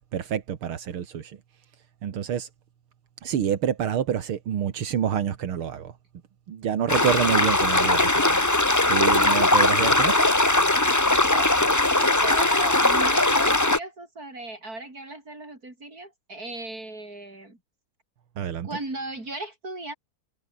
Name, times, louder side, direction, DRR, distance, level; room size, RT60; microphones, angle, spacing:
voice 1, 0.1-1.4 2.0-2.5 3.2-5.9 6.5-8.4 8.9-10.2 18.4-18.7, right 9 dB, 80° right, 2.5 m, -27 dB
sound 1, 6.9-13.8, left 2 dB, 10° left, 0.9 m, -20 dB
voice 2, 11.3-17.6 18.6-19.9, right 2 dB, 45° right, 7.4 m, -37 dB
omnidirectional pair, 2.3 m